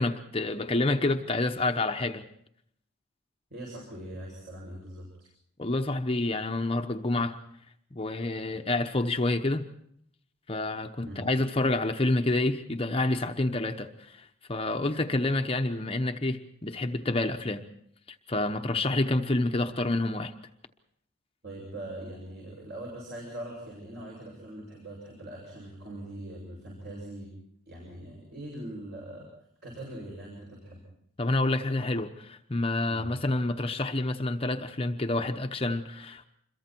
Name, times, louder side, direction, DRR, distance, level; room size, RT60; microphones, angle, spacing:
voice 1, 0.0-2.2 5.6-7.4 7.9-9.7 10.5-17.6 18.1-20.3 31.2-36.3, left 2 dB, 25° left, 6 dB, 0.9 m, -28 dB
voice 2, 3.5-5.1 11.0-11.2 21.4-27.3 27.7-29.3 29.6-30.8 32.9-33.1, right 1 dB, 50° right, -3 dB, 7.4 m, -41 dB
26.5 x 22.5 x 4.5 m, 0.70 s
head